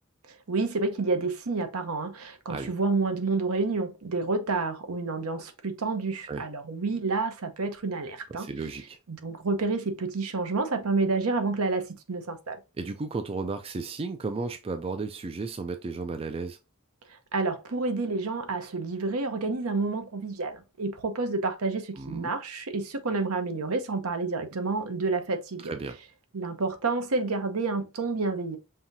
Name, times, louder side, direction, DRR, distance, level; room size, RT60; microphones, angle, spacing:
voice 1, 0.5-8.5 9.1-12.6 17.3-25.7 26.3-28.6, right 3 dB, 75° right, 0.8 m, -29 dB
voice 2, 8.3-9.0 12.8-16.6 22.0-22.3 25.6-26.0, right 3 dB, 25° right, 0.3 m, -34 dB
5.5 x 2.7 x 2.7 m
head